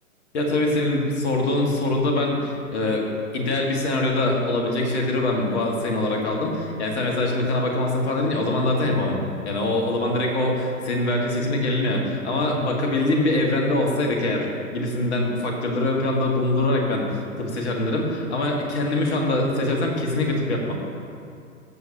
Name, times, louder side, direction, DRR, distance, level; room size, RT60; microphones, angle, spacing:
voice 1, 0.3-3.1 3.3-14.5 14.7-20.7, left 2 dB, 50° left, 0 dB, 1.8 m, -23 dB
15.0 x 6.6 x 2.8 m, 2.4 s
figure-of-eight pair, 120°, 41 cm